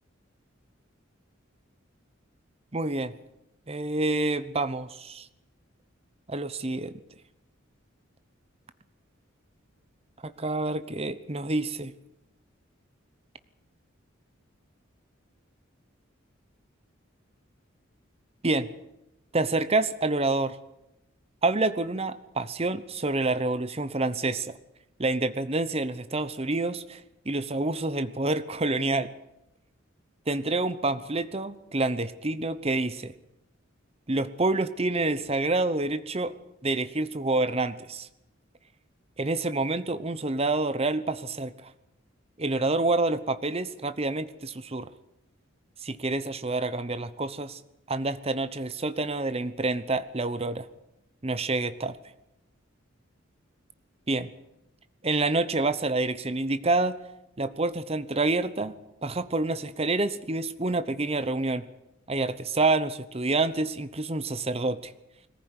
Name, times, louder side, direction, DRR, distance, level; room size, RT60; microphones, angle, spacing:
voice 1, 2.7-3.1 3.7-5.3 6.3-6.9 10.2-11.9 18.4-18.7 19.3-20.6 21.4-24.5 25.0-29.1 30.3-33.1 34.1-36.3 36.6-38.1 39.2-41.7 42.4-44.9 45.8-47.6 47.9-50.7 51.2-52.0 54.1-54.3 55.0-57.0 57.4-61.7 62.1-64.9, right 2 dB, 30° right, 13 dB, 1.0 m, -28 dB
21.5 x 15.0 x 9.8 m, 0.88 s
head